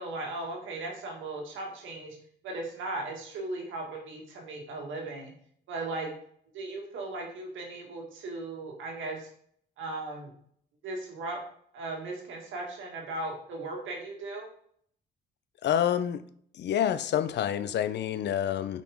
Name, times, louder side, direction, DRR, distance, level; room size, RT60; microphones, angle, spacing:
voice 1, 0.0-2.2 2.4-5.3 5.7-6.1 6.5-9.3 9.8-10.3 10.8-11.4 11.7-14.5, right 2 dB, 80° right, 1.7 m, -37 dB
voice 2, 15.6-16.2 16.5-18.8, left 10 dB, 60° left, 0.5 m, -28 dB
5.4 x 4.9 x 3.5 m
cardioid pair, 90°, 20 cm